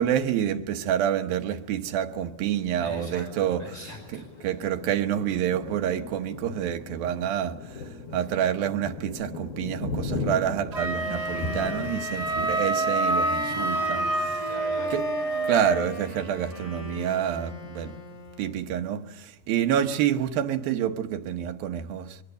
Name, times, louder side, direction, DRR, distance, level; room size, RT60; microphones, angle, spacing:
voice 1, 0.0-3.7 4.4-14.1 14.9-15.1 15.4-18.0 18.4-22.2, right 10 dB, 75° right, 2.8 m, -28 dB
Thunder, 2.1-16.4 16.9-17.1 17.4-18.0, left 3 dB, 75° left, 4.0 m, -39 dB
voice 2, 2.8-4.6 13.4-15.0, left 1 dB, 35° left, 5.8 m, -42 dB
Wind instrument woodwind instrument, 10.7-15.9, right 2 dB, 60° right, 1.0 m, -28 dB
Wind instrument woodwind instrument 2, 10.9-18.6, left 3 dB, 55° left, 8.4 m, -39 dB
23.0 x 19.5 x 8.1 m
omnidirectional pair, 4.3 m